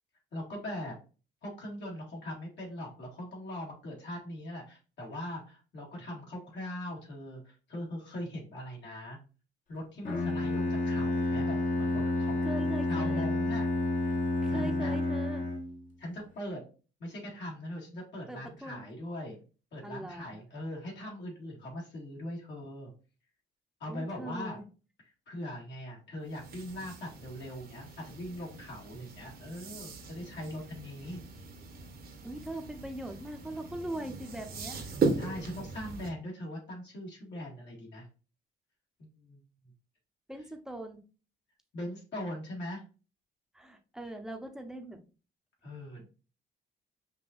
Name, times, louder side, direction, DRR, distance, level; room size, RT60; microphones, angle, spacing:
voice 1, 0.3-1.0 1.4-9.2 9.7-13.7 14.0-14.2 14.5-15.0 16.0-16.6 17.0-19.4 19.7-22.9 23.8-24.6 25.3-31.2 35.2-38.1 39.0-39.4 41.7-42.8 45.6-46.0, left 1 dB, 65° left, -3 dB, 2.0 m, -41 dB
Bowed string instrument, 10.0-15.9, left 2 dB, 40° left, 1.1 m, -30 dB
voice 2, 12.4-13.3 14.4-15.5 18.3-18.8 19.8-20.3 23.9-24.6 32.2-34.9 40.3-41.0 43.5-45.0, right 1 dB, 5° right, 4 dB, 0.8 m, -41 dB
sound 1, 26.2-36.1, right 4 dB, 50° right, 1.0 m, -38 dB
5.3 x 2.7 x 2.5 m, 0.35 s
cardioid pair, 90°, 20 cm